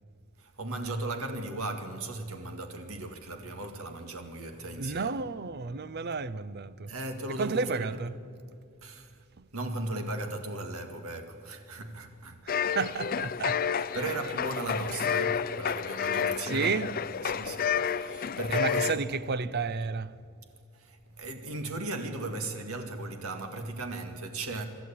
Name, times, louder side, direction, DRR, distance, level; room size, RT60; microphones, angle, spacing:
voice 1, 0.4-5.2 6.9-7.9 8.8-9.1 9.5-12.5 13.9-19.1 20.5-24.6, right 2 dB, 80° right, 2.0 m, -37 dB
voice 2, 4.8-6.9 7.4-8.1 9.4-9.5 12.4-13.7 16.4-16.9 18.5-20.1, right 4 dB, 50° right, 0.6 m, -32 dB
sound 1, 12.5-19.0, left 7 dB, 40° left, 0.4 m, -30 dB
25.0 x 12.5 x 8.6 m
head